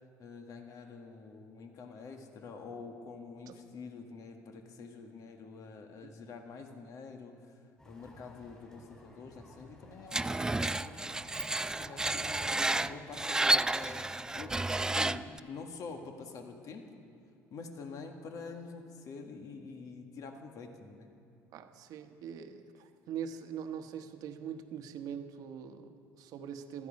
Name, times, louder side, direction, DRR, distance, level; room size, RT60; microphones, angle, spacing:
voice 1, 0.2-7.3 7.8-11.1 11.6-14.6 14.9-16.8 17.5-21.1, left 4 dB, 55° left, 4 dB, 1.7 m, -47 dB
sound 1, 7.8-13.4, left 1 dB, 15° left, 4.7 m, -54 dB
Screech, 10.1-15.4, right 2 dB, 10° right, 0.3 m, -31 dB
voice 2, 21.5-26.9, right 8 dB, 65° right, 7 dB, 1.1 m, -42 dB
16.0 x 13.5 x 5.3 m, 2.4 s
supercardioid pair, 85°, 7 cm